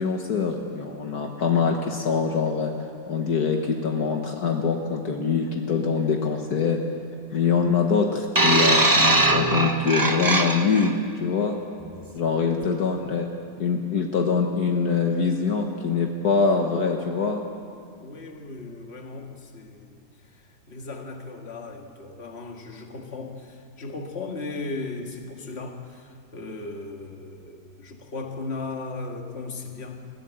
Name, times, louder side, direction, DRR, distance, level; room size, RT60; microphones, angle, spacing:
voice 1, 0.0-2.7 3.1-6.8 7.3-11.6 12.1-13.3 13.6-17.4, left 5 dB, 65° left, 3 dB, 1.8 m, -24 dB
sound 1, 8.4-10.9 11.8-12.0, right 2 dB, 20° right, 0.6 m, -21 dB
voice 2, 12.5-12.8 18.0-30.0, left 3 dB, 40° left, 3 dB, 2.0 m, -37 dB
21.5 x 15.0 x 9.1 m, 2.4 s
omnidirectional pair, 1.8 m